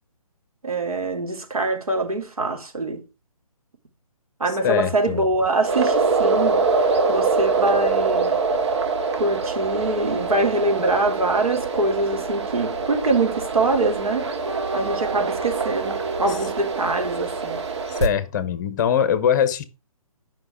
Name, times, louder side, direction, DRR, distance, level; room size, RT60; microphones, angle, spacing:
voice 1, 0.6-3.0 4.4-6.7 7.1-8.4 9.1-14.3 14.7-17.6, right 2 dB, 75° right, 4.0 m, -24 dB
voice 2, 4.6-5.2 18.0-19.6, left 8 dB, 30° left, 1.1 m, -21 dB
sound 1, 5.6-18.1, right 4 dB, 50° right, 1.9 m, -24 dB
11.5 x 6.0 x 5.1 m
figure-of-eight pair, 145°, 19 cm